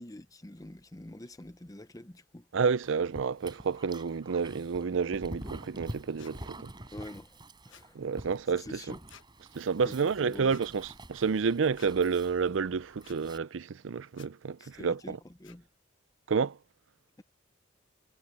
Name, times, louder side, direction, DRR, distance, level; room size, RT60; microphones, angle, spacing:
voice 1, 0.0-2.5 6.9-8.0 8.5-9.0 9.8-10.7 14.6-15.7, left 1 dB, 20° left, 0.9 m, -46 dB
voice 2, 2.5-6.7 7.9-8.8 9.5-15.2 16.3-16.6, right 5 dB, 80° right, 0.5 m, -30 dB
Dog, 2.8-13.4, right 1 dB, 25° right, 4.8 m, -47 dB
sound 1, 6.2-6.3 7.7-7.9 9.1-9.3 10.5-10.6 11.7-11.9 13.0-13.2 14.1-14.3 15.4-15.6, left 8 dB, 75° left, 1.3 m, -54 dB
head